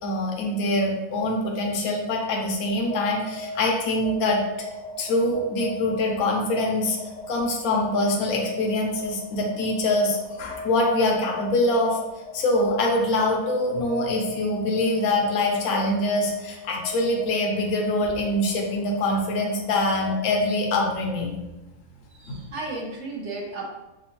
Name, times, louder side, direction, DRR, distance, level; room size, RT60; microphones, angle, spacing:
voice 1, 0.0-4.4 5.0-7.0 7.3-12.0 12.3-21.3 22.3-22.4, left 1 dB, 70° left, 0 dB, 1.1 m, -24 dB
sound 1, 2.8-21.3, left 3 dB, 85° left, 1.4 m, -38 dB
voice 2, 22.1-23.6, right 2 dB, 55° right, -1 dB, 0.8 m, -34 dB
6.1 x 2.2 x 2.9 m, 1.0 s
omnidirectional pair, 1.7 m